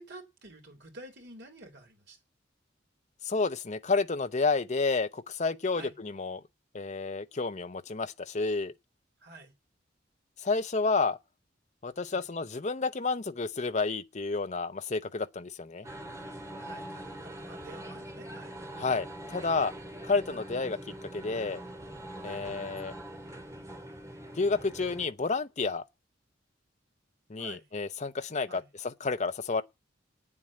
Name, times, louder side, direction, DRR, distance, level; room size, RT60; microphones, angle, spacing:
voice 1, 0.0-2.2 5.7-6.0 9.2-9.5 12.1-12.3 16.6-18.5 22.2-22.5 27.4-27.7 28.5-28.7, right 2 dB, 60° right, 3.5 m, -49 dB
voice 2, 3.2-6.4 6.7-8.7 10.4-11.2 11.8-15.9 18.8-19.7 20.0-20.8 21.1-21.6 22.2-22.9 24.4-25.8 27.3-29.6, left 4 dB, 40° left, 0.7 m, -30 dB
sound 1, 15.8-25.1, right 1 dB, 15° right, 2.2 m, -43 dB
9.0 x 7.6 x 8.5 m
head